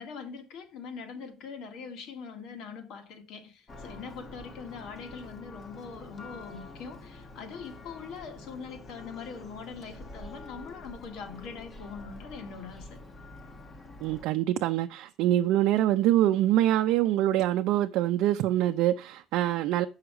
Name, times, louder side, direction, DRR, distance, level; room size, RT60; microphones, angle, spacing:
voice 1, 0.0-13.0, left 5 dB, 65° left, 1.8 m, -42 dB
Church bell, 3.7-14.2, left 2 dB, 25° left, 1.1 m, -47 dB
voice 2, 14.0-19.9, right 13 dB, 75° right, 0.5 m, -25 dB
7.9 x 5.7 x 4.8 m
cardioid pair, 175°, 0 cm